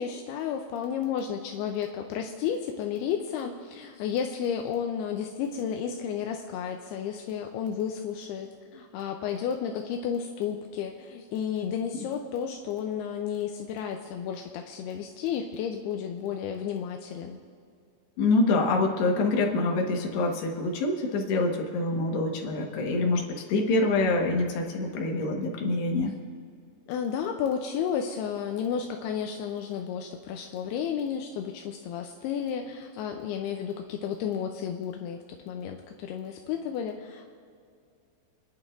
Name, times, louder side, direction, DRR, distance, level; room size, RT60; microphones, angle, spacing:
voice 1, 0.0-17.4 26.9-35.2 35.5-37.3, left 8 dB, 85° left, 4 dB, 2.3 m, -32 dB
voice 2, 18.2-23.2 23.5-26.1, left 2 dB, 70° left, 1 dB, 3.4 m, -25 dB
29.0 x 11.0 x 2.6 m, 2.3 s
omnidirectional pair, 5.3 m